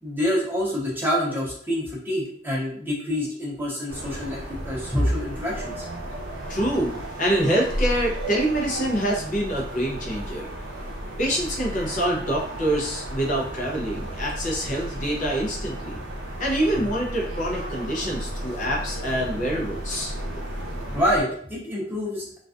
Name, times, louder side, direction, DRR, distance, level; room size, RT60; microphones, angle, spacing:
voice 1, 0.0-5.9 20.9-22.4, equal, 10° right, -4 dB, 0.6 m, -26 dB
sound 1, 3.9-21.2, right 1 dB, 80° right, 0.6 m, -34 dB
voice 2, 6.5-10.5 11.2-16.0 16.4-20.1, right 1 dB, 40° left, -3 dB, 0.6 m, -26 dB
2.3 x 2.2 x 2.4 m, 0.62 s
head